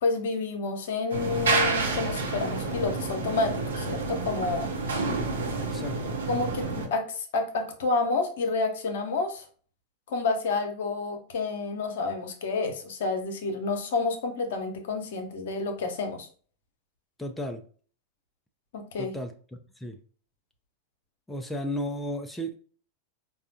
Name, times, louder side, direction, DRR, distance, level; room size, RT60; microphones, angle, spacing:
voice 1, 0.0-4.7 6.3-9.4 10.1-16.3 18.7-19.1, left 3 dB, 65° left, 0.8 m, -29 dB
sound 1, 1.1-6.9, right 3 dB, 75° right, 0.8 m, -29 dB
voice 2, 5.6-6.2 17.2-17.6 19.0-19.3 19.8-20.0 21.3-22.6, equal, 5° left, 0.5 m, -34 dB
4.9 x 2.3 x 2.7 m
figure-of-eight pair, 90°, 0 cm